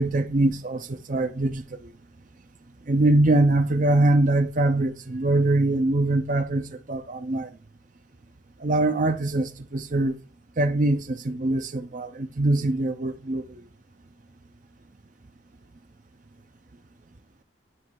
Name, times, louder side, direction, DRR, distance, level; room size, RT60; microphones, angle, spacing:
voice 1, 0.0-1.9 2.9-7.5 8.6-10.2 10.6-13.6, right 2 dB, 40° right, 0.6 m, -23 dB
9.5 x 3.3 x 4.7 m
head